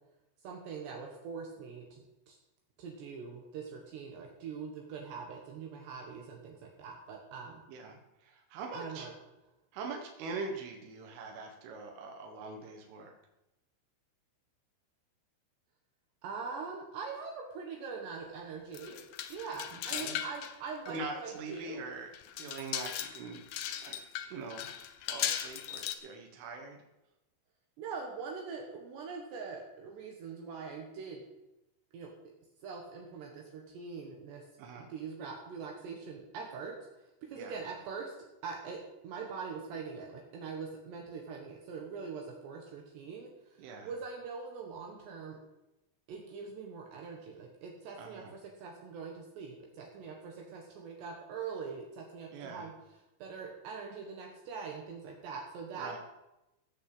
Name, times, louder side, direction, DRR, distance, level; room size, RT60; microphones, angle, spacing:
voice 1, 0.4-2.4 2.8-7.6 8.7-9.1 16.2-19.0 19.3-21.9 27.8-31.2 31.9-32.1 32.6-34.5 34.9-36.8 37.2-45.4 46.1-52.7 53.2-55.9, right 5 dB, 70° right, 1 dB, 3.4 m, -43 dB
voice 2, 7.7-9.1 9.7-13.1 19.9-20.2 20.9-22.1 22.4-23.4 23.8-24.0 24.3-24.7 25.1-26.8 34.6-34.9 37.3-37.6 43.6-43.9 48.0-48.3 52.3-52.7 55.8-56.0, right 3 dB, 85° right, 2 dB, 3.9 m, -43 dB
sound 1, 18.7-20.5 20.9-21.0 21.5-21.6 22.1-26.0, left 10 dB, 80° left, 2.1 m, -38 dB
16.5 x 6.5 x 7.9 m, 0.94 s
omnidirectional pair, 5.5 m